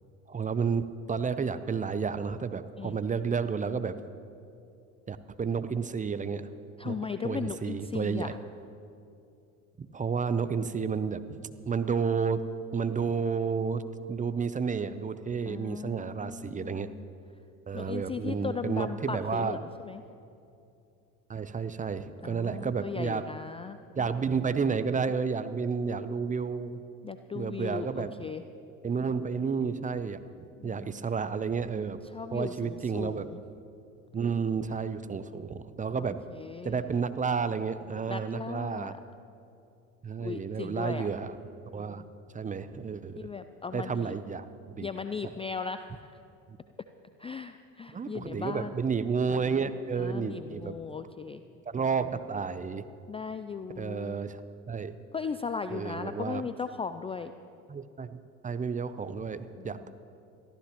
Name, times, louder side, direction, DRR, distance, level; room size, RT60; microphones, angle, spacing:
voice 1, 0.3-4.0 5.1-6.5 6.8-7.0 7.2-8.3 9.8-12.4 12.7-13.8 14.1-16.9 17.7-19.6 21.3-23.2 24.0-26.8 27.3-28.3 28.8-32.0 32.3-33.3 34.1-36.2 36.6-39.0 40.0-41.4 41.7-42.1 42.3-43.3 43.7-44.9 45.2-45.3 47.9-50.8 51.7-52.9 53.8-54.9 55.7-56.5 57.7-59.8, right 5 dB, 20° right, 12 dB, 0.6 m, -31 dB
voice 2, 6.8-8.4 15.5-17.1 17.7-20.0 22.2-23.8 27.0-28.4 30.6-31.1 31.8-33.4 36.0-37.0 38.1-38.9 40.2-41.1 43.2-44.1 44.8-45.9 47.2-48.7 50.0-51.4 53.1-54.2 55.1-57.3 59.5-60.0, left 5 dB, 15° left, 10 dB, 0.4 m, -37 dB
22.0 x 14.5 x 3.0 m, 2.6 s
hypercardioid pair, 70°, 40 cm